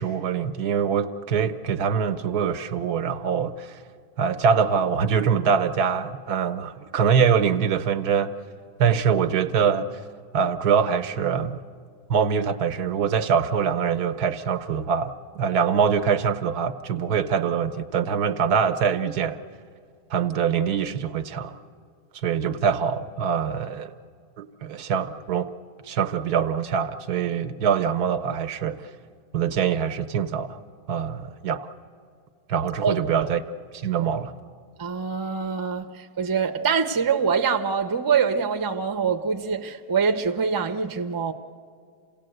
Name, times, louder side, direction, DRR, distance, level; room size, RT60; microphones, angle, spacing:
voice 1, 0.0-3.8 4.2-8.3 8.8-10.0 10.3-11.6 12.1-19.4 20.1-21.6 22.1-23.9 24.4-25.5 25.8-28.8 29.3-30.6 30.9-31.7 32.5-33.4 33.7-34.3, right 7 dB, 85° right, 1.4 m, -24 dB
voice 2, 32.8-33.3 34.0-34.1 34.8-41.3, right 6 dB, 25° right, 0.5 m, -24 dB
27.5 x 17.5 x 7.9 m
omnidirectional pair, 1.6 m